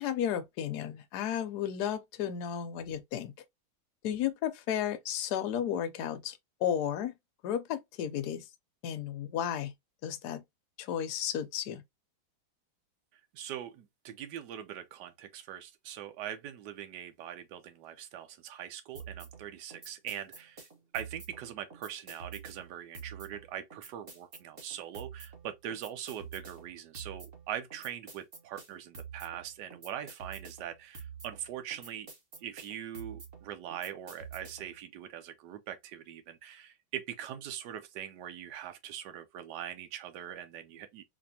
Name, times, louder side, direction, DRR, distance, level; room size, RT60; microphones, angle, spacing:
voice 1, 0.0-3.3 4.0-6.3 6.6-7.1 7.4-8.4 8.8-9.7 10.0-10.4 10.8-11.8, left 9 dB, 65° left, 1.0 m, -33 dB
voice 2, 13.3-20.6 20.9-32.1 32.4-41.0, right 10 dB, 65° right, 1.2 m, -42 dB
sound 1, 18.9-34.8, right 5 dB, 35° right, 1.2 m, -48 dB
4.2 x 2.8 x 2.7 m
omnidirectional pair, 2.2 m